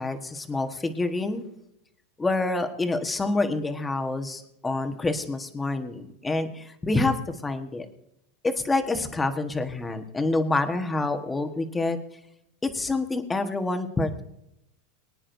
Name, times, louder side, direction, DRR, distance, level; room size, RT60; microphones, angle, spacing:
voice 1, 0.0-1.4 2.2-7.9 8.4-12.0 12.6-14.2, left 2 dB, 10° left, 7 dB, 1.3 m, -27 dB
23.5 x 9.8 x 2.7 m, 0.80 s
supercardioid pair, 135°, 0 cm